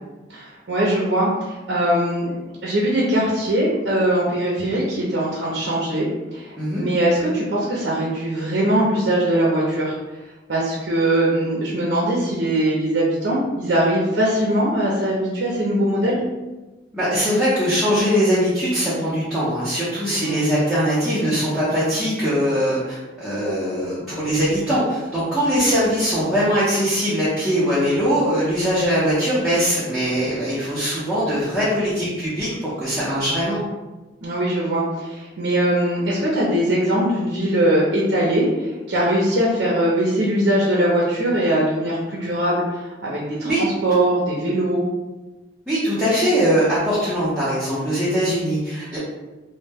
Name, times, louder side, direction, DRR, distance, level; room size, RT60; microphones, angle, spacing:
voice 1, 0.3-10.0 10.5-16.2 20.2-20.5 34.2-44.9, right 1 dB, 75° right, -5 dB, 0.5 m, -21 dB
voice 2, 16.9-33.6 43.4-43.6 45.7-49.0, equal, ahead, -11 dB, 0.6 m, -21 dB
2.1 x 2.1 x 3.3 m, 1.1 s
head